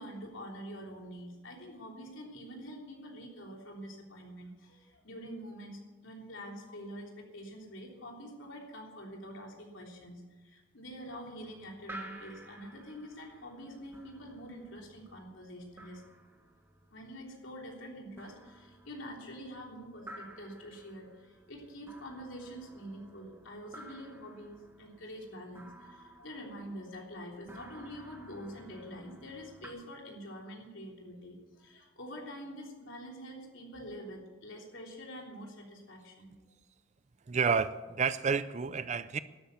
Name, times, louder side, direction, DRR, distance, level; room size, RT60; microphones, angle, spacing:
voice 1, 0.0-16.0 16.9-36.3, equal, 65° left, 0 dB, 3.4 m, -46 dB
sound 1, 11.0-29.7, right 1 dB, 10° right, 1.5 m, -53 dB
voice 2, 37.3-39.2, right 5 dB, 35° right, 15 dB, 0.4 m, -30 dB
12.5 x 8.8 x 9.4 m, 1.2 s
head